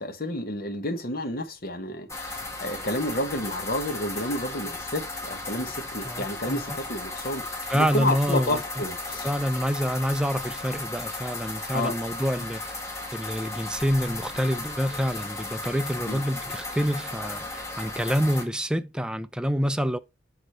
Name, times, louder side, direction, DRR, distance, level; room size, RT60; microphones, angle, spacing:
voice 1, 0.0-7.4 7.7-9.3 11.7-11.9 16.1-16.2, left 1 dB, 55° left, 1.1 m, -30 dB
sound 1, 2.1-18.4, left 2 dB, 15° left, 1.4 m, -35 dB
voice 2, 6.0-6.8 7.7-8.6 9.2-12.7 13.1-20.0, equal, 5° right, 0.3 m, -27 dB
6.5 x 3.8 x 4.2 m
head